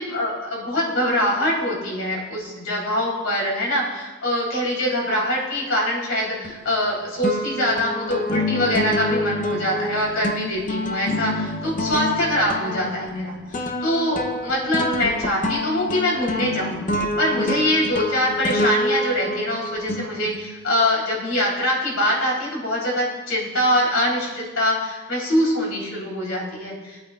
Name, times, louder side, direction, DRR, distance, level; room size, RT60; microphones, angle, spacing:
voice 1, 0.0-16.8 17.2-27.0, left 1 dB, 70° left, -3 dB, 3.5 m, -24 dB
sound 1, 6.4-6.9 7.2-20.6, left 1 dB, 40° left, 0.7 m, -27 dB
20.0 x 8.6 x 2.4 m, 1.3 s
head